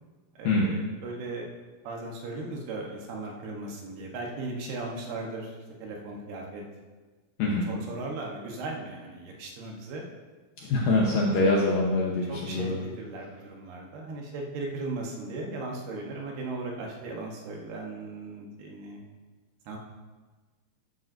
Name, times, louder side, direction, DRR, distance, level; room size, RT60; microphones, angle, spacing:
voice 1, 0.3-1.5 1.8-6.6 7.7-10.0 10.6-11.0 12.3-12.7 13.0-19.0 19.7-19.8, right 2 dB, 70° right, -1 dB, 2.9 m, -37 dB
voice 2, 10.7-12.8, left 2 dB, 75° left, -2 dB, 2.2 m, -24 dB
13.5 x 9.4 x 2.6 m, 1.3 s
omnidirectional pair, 5.1 m